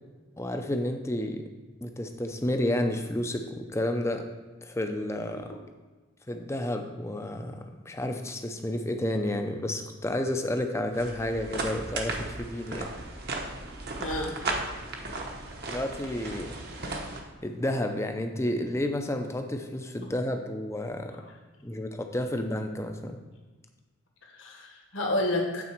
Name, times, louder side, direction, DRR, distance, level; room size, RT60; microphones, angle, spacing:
voice 1, 0.4-1.4 1.8-4.2 4.6-5.5 6.3-12.9 15.7-17.0 17.4-21.2 21.6-23.2, left 1 dB, 10° left, 5 dB, 0.5 m, -31 dB
sound 1, 10.9-17.2, right 2 dB, 45° right, 0.9 m, -35 dB
voice 2, 14.0-14.3 21.1-21.2 24.2-25.6, left 1 dB, 60° left, 0 dB, 1.4 m, -30 dB
8.6 x 4.1 x 5.9 m, 1.3 s
head